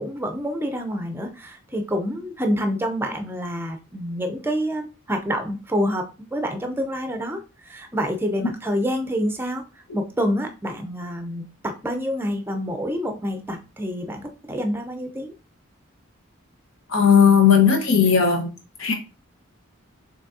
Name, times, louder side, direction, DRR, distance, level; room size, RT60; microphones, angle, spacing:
voice 1, 0.0-9.6 9.9-15.3, equal, 10° right, 6 dB, 0.6 m, -27 dB
voice 2, 16.9-18.5 18.8-18.9, left 7 dB, 65° left, 4 dB, 1.1 m, -16 dB
6.0 x 3.3 x 2.7 m, 0.32 s
head